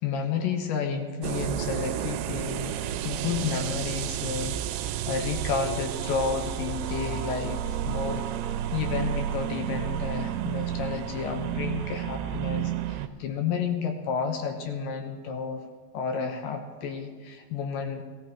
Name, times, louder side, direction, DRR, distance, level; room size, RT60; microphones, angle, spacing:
voice 1, 0.0-8.3 8.7-15.6 15.9-18.0, left 6 dB, 75° left, 5 dB, 2.2 m, -31 dB
sound 1, 1.2-13.1, right 11 dB, 85° right, 2.8 m, -31 dB
18.5 x 14.5 x 3.0 m, 1.5 s
omnidirectional pair, 5.0 m